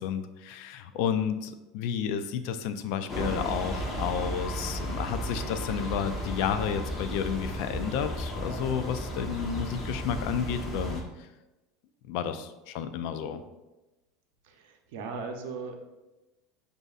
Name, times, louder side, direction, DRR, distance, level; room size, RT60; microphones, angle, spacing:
voice 1, 0.0-11.0 12.1-13.4, left 8 dB, 70° left, 10 dB, 0.3 m, -31 dB
sound 1, 3.1-11.0, equal, 25° left, 0.9 m, -34 dB
voice 2, 14.5-15.7, right 4 dB, 75° right, 4 dB, 0.6 m, -38 dB
6.3 x 2.6 x 2.4 m, 1.0 s
supercardioid pair, 115°, 0 cm